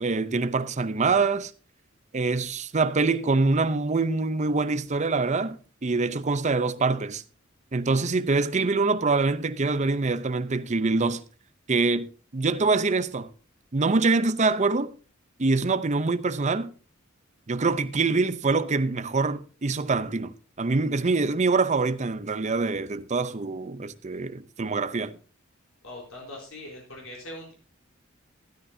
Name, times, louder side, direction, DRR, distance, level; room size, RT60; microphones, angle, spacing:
voice 1, 0.0-1.5 2.1-7.2 7.7-11.2 11.7-12.1 12.3-13.3 13.7-14.9 15.4-16.7 17.5-25.2, right 3 dB, 35° right, 0.6 m, -25 dB
voice 2, 25.8-27.5, left 1 dB, 80° left, 4.1 m, -41 dB
13.0 x 12.5 x 2.7 m
head